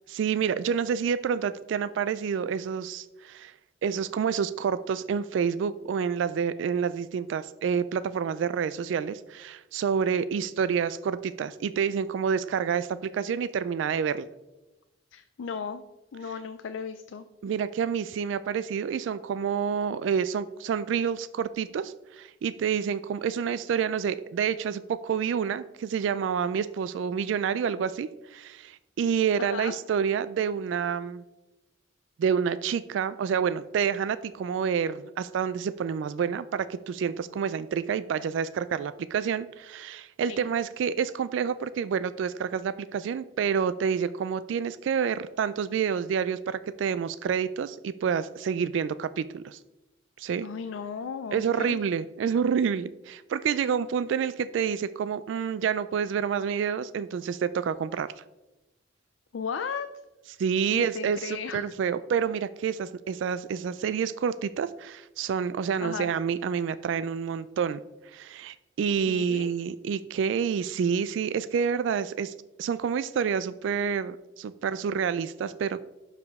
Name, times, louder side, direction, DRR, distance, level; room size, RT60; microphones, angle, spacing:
voice 1, 0.1-3.5 3.8-14.3 17.4-31.2 32.2-49.6 50.2-50.5 51.3-58.1 60.4-67.8 68.1-72.3 72.6-75.8, right 7 dB, 70° right, 15 dB, 0.3 m, -28 dB
voice 2, 15.1-15.8 16.1-17.3 29.4-29.8 40.2-40.5 50.4-51.8 59.3-59.9 60.7-61.6 65.8-66.1 69.1-69.5, left 6 dB, 80° left, 9 dB, 0.4 m, -35 dB
11.5 x 4.9 x 3.5 m, 1.0 s
head